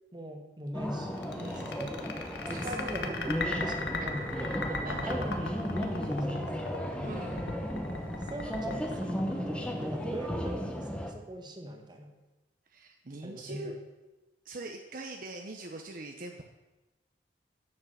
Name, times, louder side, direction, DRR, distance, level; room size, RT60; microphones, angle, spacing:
voice 1, 0.1-2.0 2.5-6.9 7.7-8.0 8.3-12.1 13.2-13.7, equal, 25° right, 4 dB, 1.3 m, -41 dB
sound 1, 0.7-11.1, equal, 5° left, 1.0 m, -35 dB
sound 2, 1.2-9.8, left 3 dB, 75° left, 1.3 m, -37 dB
voice 2, 1.3-1.7 2.5-2.9 4.8-5.1 7.0-7.4 12.7-13.8 14.4-16.4, right 2 dB, 50° right, 3 dB, 0.8 m, -42 dB
9.8 x 7.3 x 6.7 m, 1.1 s
head